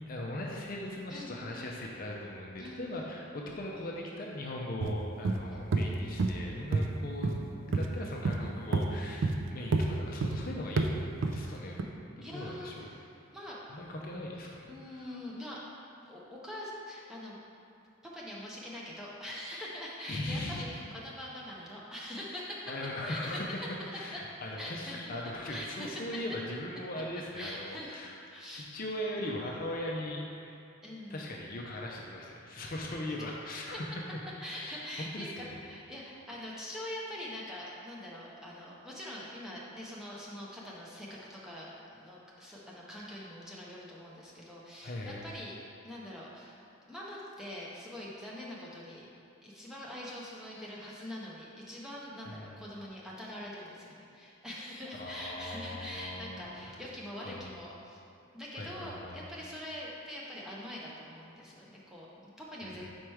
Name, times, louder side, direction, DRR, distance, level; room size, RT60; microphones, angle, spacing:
voice 1, 0.0-11.9 12.2-12.9 13.7-15.2 20.1-20.6 22.7-23.4 23.9-28.2 28.5-30.6 31.1-34.0 34.5-35.6 36.3-36.4 44.8-45.3 52.3-52.6 55.0-56.7 57.2-57.6 58.5-59.2 62.6-63.0, left 1 dB, 40° left, -1 dB, 0.5 m, -39 dB
voice 2, 1.1-1.6 2.6-3.1 5.5-5.6 6.0-6.5 12.2-13.6 14.7-15.6 16.1-17.4 18.1-22.7 23.1-23.7 24.6-25.0 25.5-26.2 27.3-28.0 28.2-28.7 30.8-31.5 33.7-33.8 34.4-45.6 45.8-49.1 49.4-58.0 58.3-63.0, left 1 dB, 5° right, -6 dB, 0.6 m, -43 dB
sound 1, 4.8-5.0 5.2-5.4 5.7-5.8 6.2-6.3 6.7-6.9 7.2-7.4 7.7-7.9 8.2-8.4 8.7-8.8 9.2-9.4 9.7-9.8 10.2-10.4 10.8-10.9 11.2-11.4 11.8-11.9, right 3 dB, 60° right, 0.4 m, -28 dB
4.8 x 4.4 x 4.6 m, 2.6 s
head